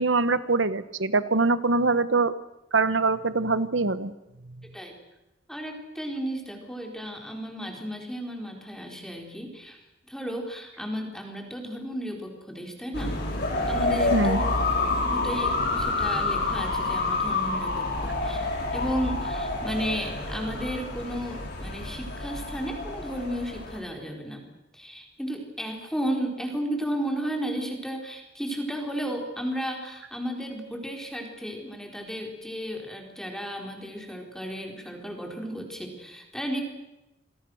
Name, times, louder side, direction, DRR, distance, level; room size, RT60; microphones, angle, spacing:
voice 1, 0.0-2.4 2.7-4.1 14.1-14.4, right 3 dB, 65° right, 14 dB, 1.3 m, -23 dB
voice 2, 4.6-4.9 5.5-9.8 10.1-13.2 13.7-14.4 15.0-24.5 24.7-36.6, equal, 5° left, 2 dB, 4.3 m, -34 dB
sound 1, 12.9-23.8, left 2 dB, 60° left, 5.9 m, -28 dB
28.0 x 22.0 x 6.5 m, 0.96 s
head